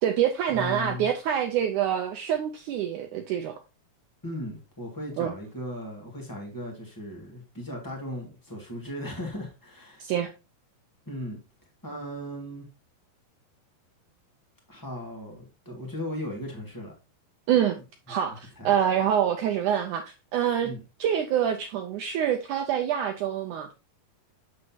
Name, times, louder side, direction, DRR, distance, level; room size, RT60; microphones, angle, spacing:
voice 1, 0.0-3.6 5.2-5.3 10.0-10.3 17.5-17.8 18.1-20.7 21.0-23.7, right 9 dB, 80° right, 1.8 m, -26 dB
voice 2, 0.5-1.1 4.2-10.1 11.0-11.4 11.8-12.7 14.7-16.9 18.1-18.2 18.6-18.7 20.6-20.8, left 1 dB, 15° left, 0.7 m, -37 dB
7.9 x 6.2 x 2.8 m
omnidirectional pair, 4.3 m